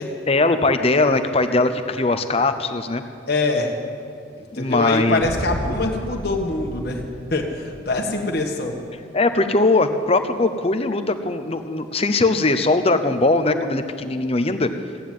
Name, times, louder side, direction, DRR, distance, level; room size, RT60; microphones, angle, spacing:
voice 1, 0.3-3.0 4.5-5.2 5.7-5.9 9.1-14.7, left 2 dB, 30° left, 9 dB, 0.8 m, -20 dB
voice 2, 3.3-3.7 4.5-7.0 7.3-8.7, left 2 dB, 50° left, 1 dB, 1.6 m, -24 dB
sound 1, 5.2-8.1, equal, 70° right, 2.9 m, -33 dB
15.5 x 9.3 x 9.3 m, 2.6 s
head